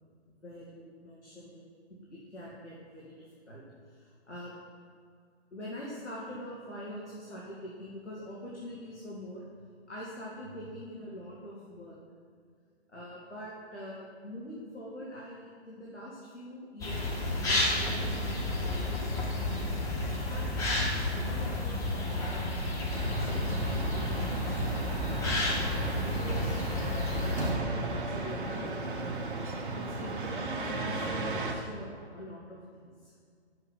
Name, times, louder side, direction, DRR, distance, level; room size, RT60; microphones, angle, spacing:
voice 1, 0.3-1.6 2.1-3.1 3.5-4.5 5.5-9.4 9.9-12.0 12.9-17.2 17.4-19.6 20.2-20.4 20.8-21.8 22.2-22.6 23.2-24.7 25.8-26.6 27.2-29.2 29.7-33.1, equal, 85° left, -6 dB, 2.3 m, -44 dB
sound 1, 16.8-27.5, left 1 dB, 10° left, 1.0 m, -31 dB
sound 2, 22.9-31.5, right 2 dB, 50° right, 1.3 m, -35 dB
6.9 x 6.7 x 7.6 m, 2.1 s
figure-of-eight pair, 130°, 34 cm